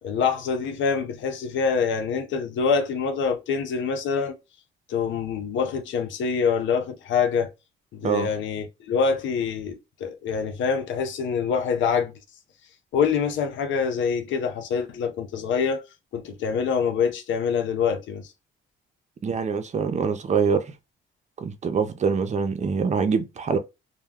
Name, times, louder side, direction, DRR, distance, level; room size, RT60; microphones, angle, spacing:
voice 1, 0.0-4.4 4.9-7.5 7.9-12.1 12.9-15.8 16.1-18.3, left 6 dB, 75° left, 0.6 m, -25 dB
voice 2, 19.2-20.8 21.4-23.6, right 6 dB, 35° right, 0.5 m, -24 dB
2.2 x 2.2 x 3.3 m
cardioid pair, 90°, 20 cm